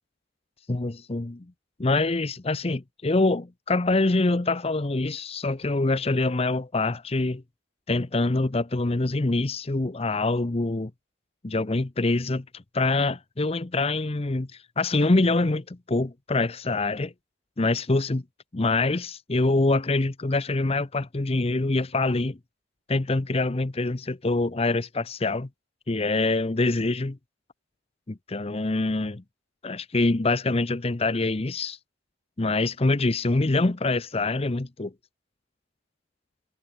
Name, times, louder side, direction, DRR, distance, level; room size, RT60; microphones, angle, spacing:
voice 1, 0.7-1.5 1.8-7.4 7.9-10.9 11.4-14.5 14.8-17.1 17.6-18.2 18.5-22.4 22.9-25.5 25.9-27.2 28.3-29.2 29.6-31.8 32.4-34.9, left 2 dB, 30° left, 0.7 m, -25 dB
head